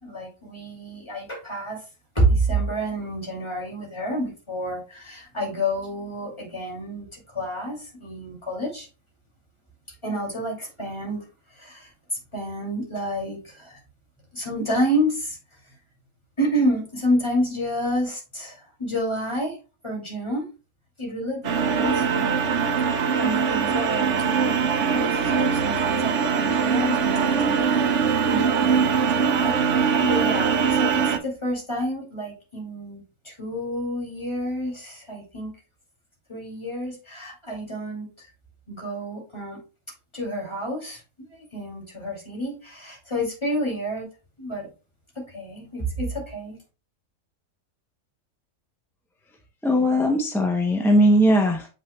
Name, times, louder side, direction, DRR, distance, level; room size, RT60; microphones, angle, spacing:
voice 1, 0.0-1.8 2.1-8.9 10.0-11.2 11.5-13.8 14.3-15.4 15.6-15.7 16.4-19.6 19.8-20.5 21.0-22.6 22.9-35.5 36.3-38.3 38.7-39.6 40.1-41.0 41.3-44.1 44.4-44.7 45.1-46.6, equal, 20° left, -2 dB, 2.7 m, -29 dB
sound 1, 21.4-31.2, right 6 dB, 70° right, 1.1 m, -22 dB
voice 2, 49.6-51.7, equal, 5° left, 3 dB, 0.5 m, -19 dB
7.5 x 5.8 x 2.3 m, 0.32 s
omnidirectional pair, 1.3 m